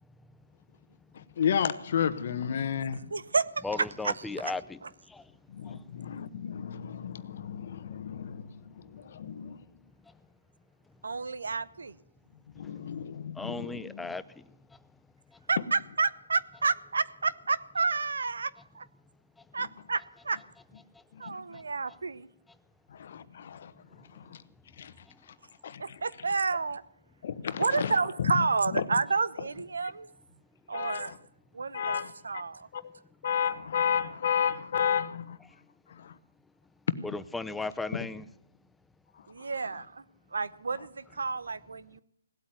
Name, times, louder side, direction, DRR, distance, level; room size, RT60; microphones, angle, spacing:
voice 1, 1.1-3.0 5.5-9.6 12.5-14.1 21.1-21.6 22.9-23.7 24.0-24.4 24.8-24.9 25.6-26.0 27.2-27.9 28.2-28.3 28.7-28.8 30.7-31.1 31.7-32.1 32.7-32.8 33.2-35.4 35.9-36.2 37.9-38.1 39.4-39.5, left 8 dB, 50° left, 1.2 m, -32 dB
voice 2, 3.1-4.5 4.8-4.9 11.0-12.0 15.5-18.9 19.5-20.4 21.2-22.3 25.8-26.8 27.6-30.1 30.7-31.1 31.5-32.7 39.3-40.0 40.3-42.0, right 4 dB, 85° right, 0.9 m, -30 dB
voice 3, 3.6-4.6 5.1-5.2 12.6-12.7 13.4-14.4 37.1-38.2, left 3 dB, 5° left, 0.5 m, -35 dB
17.5 x 8.6 x 9.4 m
hypercardioid pair, 155°, 0 cm